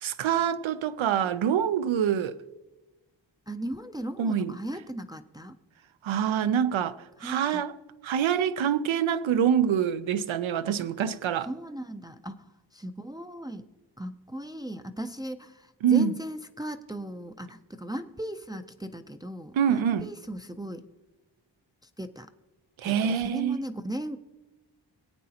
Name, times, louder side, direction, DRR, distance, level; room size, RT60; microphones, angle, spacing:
voice 1, 0.0-2.4 4.2-4.5 6.0-7.7 8.0-11.5 15.8-16.1 19.5-20.1 22.8-23.6, right 8 dB, 85° right, 0.6 m, -25 dB
voice 2, 3.5-5.6 7.2-7.6 10.7-10.8 11.5-12.5 12.7-13.7 14.0-20.9 21.8-22.3 22.8-24.2, right 1 dB, 10° right, 0.4 m, -37 dB
20.0 x 8.6 x 2.8 m
wide cardioid pair, 85°, 46 cm